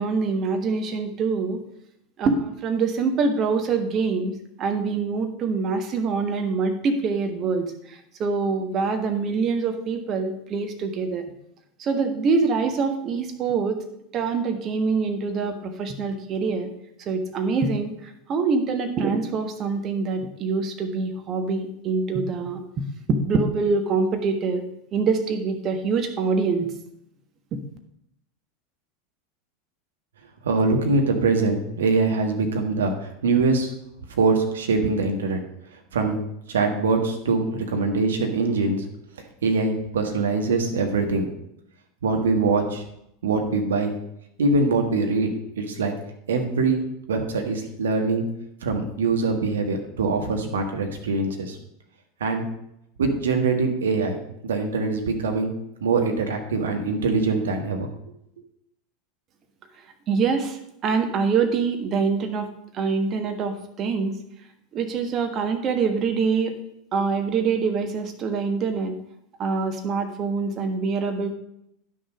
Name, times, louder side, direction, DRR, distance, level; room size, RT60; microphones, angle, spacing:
voice 1, 0.0-1.6 2.2-4.3 4.6-11.2 11.8-13.8 14.1-16.7 17.0-24.6 24.9-26.7 27.5-27.6 60.1-62.5 62.7-64.1 64.7-66.5 66.9-68.9 69.4-71.3, right 4 dB, 35° right, 6 dB, 1.4 m, -25 dB
voice 2, 30.4-33.7 34.2-35.4 35.9-36.2 36.5-38.8 39.4-41.3 42.0-42.8 43.2-43.9 44.4-45.3 45.6-45.9 46.3-46.8 47.1-48.2 48.6-51.6 52.2-52.4 53.0-55.5 55.8-57.9, right 3 dB, 70° right, 4 dB, 1.5 m, -23 dB
10.5 x 6.4 x 5.1 m, 0.77 s
figure-of-eight pair, 80°, 0 cm